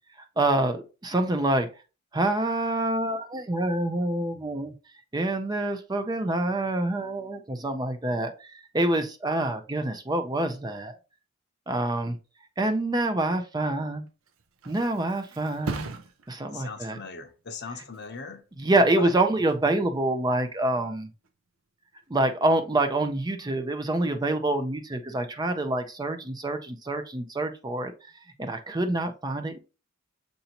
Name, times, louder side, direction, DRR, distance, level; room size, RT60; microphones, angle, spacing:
voice 1, 0.4-1.7 2.1-4.7 5.1-11.0 11.7-12.2 12.6-14.0 14.7-15.9 16.3-17.0 18.6-21.1 22.1-27.9 28.4-29.6, right 2 dB, 20° right, 0.5 m, -26 dB
Thump thud, 14.1-21.5 21.9-22.4, right 3 dB, 80° right, 0.6 m, -43 dB
voice 2, 16.5-18.4 19.0-19.1, left 4 dB, 55° left, 0.8 m, -38 dB
6.7 x 2.6 x 2.9 m
head